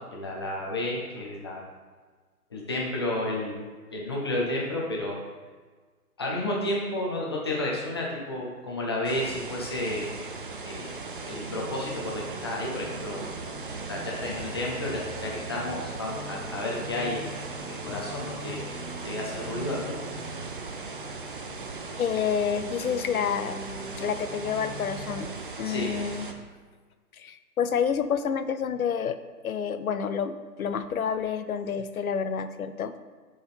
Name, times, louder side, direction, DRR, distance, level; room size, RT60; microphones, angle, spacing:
voice 1, 0.0-1.6 2.5-3.6 3.9-5.2 6.2-10.1 10.7-10.9 11.2-13.3 13.9-18.6 19.0-20.0 25.6-26.0, left 1 dB, 15° left, -3 dB, 0.6 m, -31 dB
sound 1, 9.0-26.3, right 4 dB, 35° right, 0.4 m, -39 dB
sound 2, 9.2-25.2, right 1 dB, 15° right, 2.2 m, -43 dB
voice 2, 22.0-23.6 24.0-26.3 27.2-29.2 29.4-32.9, left 7 dB, 65° left, 10 dB, 0.6 m, -29 dB
7.0 x 3.9 x 5.6 m, 1.5 s
figure-of-eight pair, 135°, 46 cm